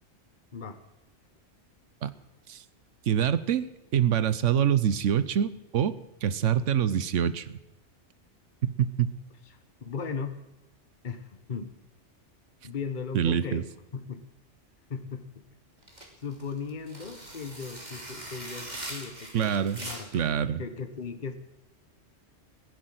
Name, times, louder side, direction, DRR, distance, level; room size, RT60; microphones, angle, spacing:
voice 1, 3.1-7.6 8.6-9.2 13.1-13.6 19.3-19.8 20.1-20.6, right 9 dB, 90° right, 15 dB, 1.2 m, -26 dB
voice 2, 9.4-10.4 11.0-11.7 12.6-13.7 13.9-14.3 14.9-15.4 16.2-20.1 20.6-21.4, left 5 dB, 45° left, 8 dB, 1.4 m, -37 dB
sound 1, 15.8-20.3, right 1 dB, 35° right, 3.2 m, -41 dB
15.0 x 11.0 x 7.6 m, 0.98 s
omnidirectional pair, 1.2 m